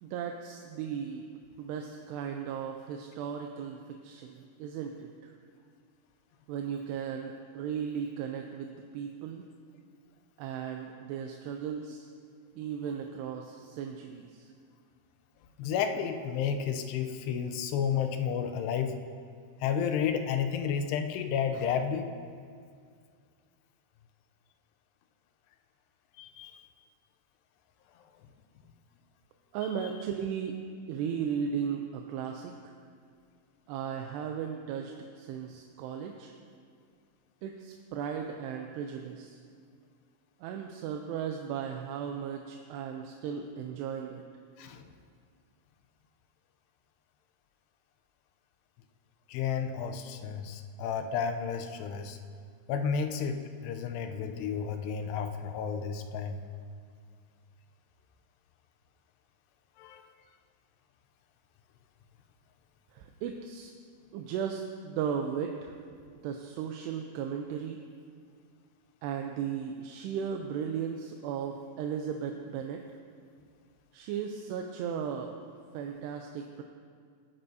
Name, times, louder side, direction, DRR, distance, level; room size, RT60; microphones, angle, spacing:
voice 1, 0.0-1.3 1.6-5.3 6.5-9.4 10.4-12.1 12.6-14.5 29.5-30.6 30.9-32.5 33.7-36.3 37.4-39.4 40.4-44.2 62.9-63.7 64.1-65.7 66.2-67.8 69.0-72.8 73.9-75.3 75.7-76.6, right 7 dB, 85° right, 3 dB, 2.7 m, -36 dB
voice 2, 15.6-19.0 19.6-22.1 26.2-26.6 44.6-44.8 49.3-52.2 52.7-56.4 59.8-60.0, left 7 dB, 85° left, 6 dB, 2.7 m, -31 dB
19.0 x 8.9 x 2.7 m, 2.1 s
omnidirectional pair, 4.8 m